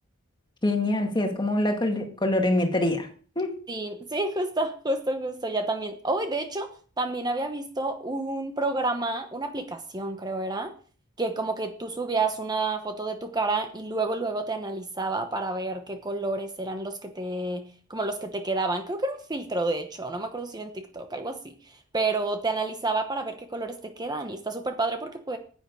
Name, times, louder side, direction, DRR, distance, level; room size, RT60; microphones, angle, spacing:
voice 1, 0.6-3.1 3.4-3.5, left 1 dB, 20° left, 4 dB, 1.9 m, -24 dB
voice 2, 3.7-10.7 11.2-25.4, right 2 dB, 20° right, 6 dB, 1.0 m, -30 dB
10.0 x 9.3 x 4.9 m, 0.43 s
head